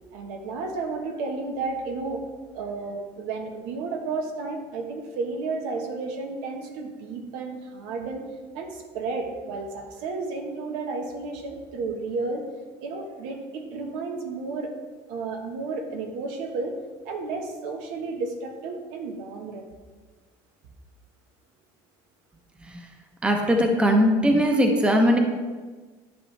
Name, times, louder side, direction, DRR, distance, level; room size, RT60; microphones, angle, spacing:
voice 1, 0.1-2.2 2.5-8.2 8.5-12.4 12.8-14.7 15.1-16.8 17.0-19.7, right 3 dB, 85° right, 3 dB, 1.3 m, -32 dB
voice 2, 23.2-25.2, equal, 10° right, 3 dB, 0.8 m, -20 dB
11.0 x 6.6 x 3.3 m, 1.4 s
cardioid pair, 160°, 11 cm